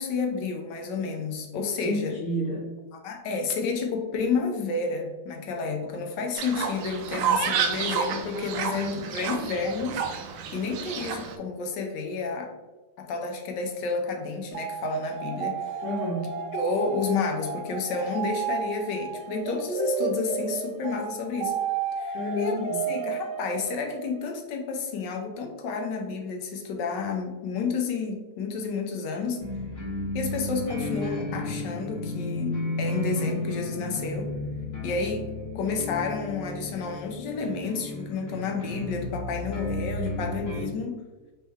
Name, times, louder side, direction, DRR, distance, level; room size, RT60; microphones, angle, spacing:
voice 1, 0.0-2.2 3.0-10.0 10.5-12.5 13.0-15.7 16.5-21.5 22.0-29.4 30.1-34.3 34.8-35.3 35.5-41.0, left 4 dB, 70° left, 2 dB, 1.1 m, -30 dB
voice 2, 1.8-2.6 15.8-16.3 22.1-22.9, left 1 dB, 85° left, -4 dB, 1.8 m, -30 dB
Fowl, 6.4-11.4, right 7 dB, 85° right, 1.5 m, -30 dB
sound 1, 14.5-24.3, right 7 dB, 65° right, 1.1 m, -32 dB
sound 2, 29.4-40.6, left 2 dB, 40° left, 1.0 m, -33 dB
4.2 x 3.1 x 3.4 m, 1.2 s
omnidirectional pair, 2.4 m